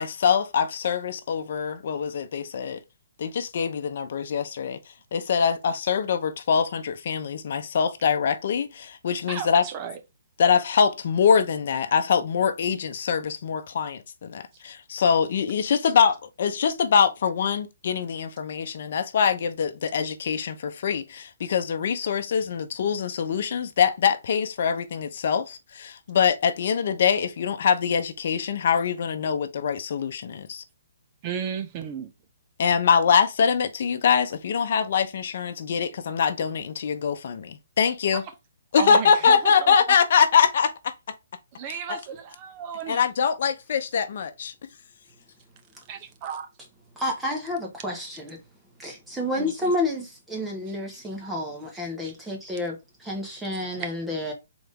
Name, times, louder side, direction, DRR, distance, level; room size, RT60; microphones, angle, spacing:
voice 1, 0.0-2.8 3.2-4.8 5.1-9.6 10.4-30.6 32.6-38.2 38.7-40.9 41.7-42.0 42.9-44.5, left 7 dB, 55° left, 0.8 m, -23 dB
voice 2, 9.3-10.0 31.2-32.1 38.8-39.7 41.6-43.0 45.9-46.5 52.0-52.1, right 8 dB, 25° right, 0.7 m, -34 dB
voice 3, 47.0-48.4 48.8-54.3, left 1 dB, 5° right, 1.1 m, -30 dB
4.0 x 3.5 x 3.5 m
hypercardioid pair, 165°, 0 cm